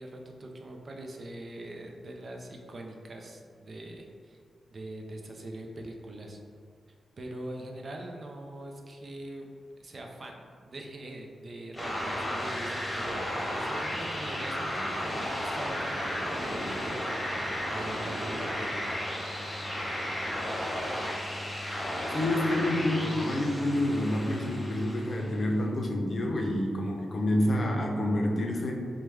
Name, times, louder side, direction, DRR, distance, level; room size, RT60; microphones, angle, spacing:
voice 1, 0.0-4.4 4.7-6.4 7.2-9.5 9.8-18.8, right 1 dB, 50° right, 1 dB, 0.4 m, -42 dB
sound 1, 11.7-25.4, equal, 20° left, 1.0 m, -33 dB
voice 2, 22.1-28.7, left 1 dB, 55° left, 1 dB, 0.5 m, -28 dB
3.2 x 2.1 x 3.2 m, 2.1 s
cardioid pair, 55°, 0 cm